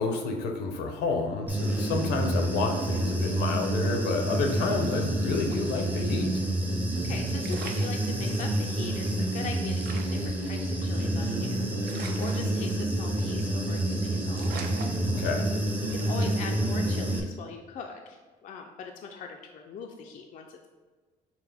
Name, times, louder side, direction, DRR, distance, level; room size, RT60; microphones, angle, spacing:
voice 1, 0.0-6.4 15.0-15.5, left 4 dB, 75° left, 4 dB, 0.7 m, -30 dB
Human voice / Buzz, 1.5-17.2, right 1 dB, 10° right, 0.6 m, -28 dB
sound 1, 4.4-5.6 5.9-6.0 7.1-7.2 7.4-8.6 9.1-9.2 9.3-9.4 9.8-11.3 11.8-13.1 13.4-13.7 14.0-14.1 14.4-15.7 16.2-16.5, right 5 dB, 65° right, 0.5 m, -43 dB
voice 2, 7.0-15.0 15.9-20.7, left 5 dB, 50° left, 2 dB, 0.4 m, -41 dB
5.8 x 2.1 x 3.4 m, 1.4 s
cardioid pair, 110°, 17 cm